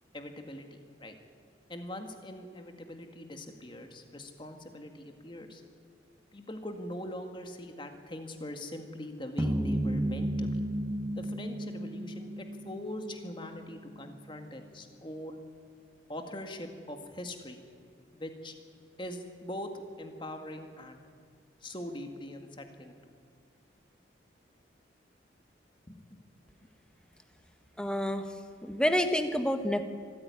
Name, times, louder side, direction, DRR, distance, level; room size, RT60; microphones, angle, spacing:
voice 1, 0.1-1.2 1.7-5.6 6.3-10.6 11.2-15.4 16.1-17.6 18.1-18.6 19.0-21.0 21.6-23.0 25.9-26.2, left 1 dB, 25° left, 5 dB, 2.0 m, -42 dB
sound 1, 9.4-13.8, right 1 dB, 15° right, 0.7 m, -33 dB
voice 2, 27.8-28.2 28.6-29.8, equal, 5° left, 7 dB, 1.2 m, -28 dB
24.0 x 14.5 x 9.8 m, 2.1 s
head